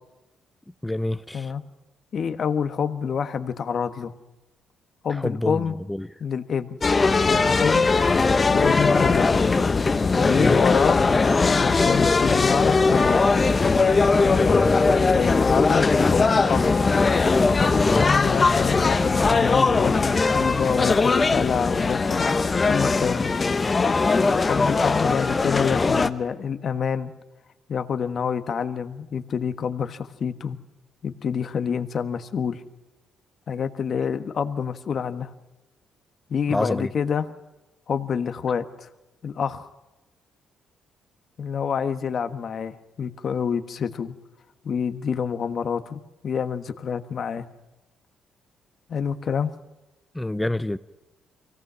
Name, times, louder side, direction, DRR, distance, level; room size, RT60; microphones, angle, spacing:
voice 1, 0.8-1.5 5.2-6.1 10.2-10.6 14.4-14.7 17.7-18.1 36.5-36.9 50.1-50.8, left 1 dB, 10° left, 13 dB, 0.6 m, -27 dB
voice 2, 2.1-4.1 5.0-5.7 6.2-6.8 7.3-7.9 8.5-9.5 10.2-11.0 11.5-13.2 14.3-14.6 15.0-16.7 17.6-22.3 22.7-23.3 24.4-27.1 27.7-30.6 31.0-32.6 33.5-35.3 36.3-37.3 37.9-38.9 39.2-39.7 41.4-44.1 44.6-47.5 48.9-49.5, left 7 dB, 55° left, 10 dB, 1.4 m, -27 dB
sound 1, 6.8-26.1, left 4 dB, 30° left, 1.0 m, -20 dB
24.5 x 17.5 x 6.3 m, 1.0 s
cardioid pair, 90°, 0 cm